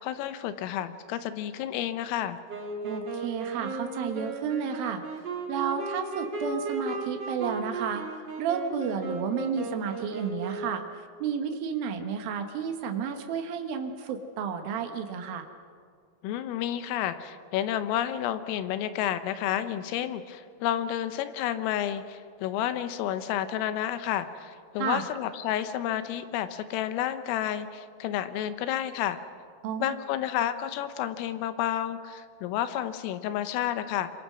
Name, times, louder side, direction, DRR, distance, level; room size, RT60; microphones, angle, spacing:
voice 1, 0.0-2.4 16.2-29.2 29.8-34.1, left 11 dB, 80° left, 11 dB, 3.6 m, -30 dB
Wind instrument woodwind instrument, 2.5-10.9, right 2 dB, 90° right, 0.9 m, -35 dB
voice 2, 2.8-5.2 5.5-10.8 11.2-15.5 24.8-25.0 29.6-30.0, right 7 dB, 70° right, 6 dB, 2.3 m, -32 dB
26.5 x 23.5 x 6.2 m, 2.2 s
omnidirectional pair, 6.0 m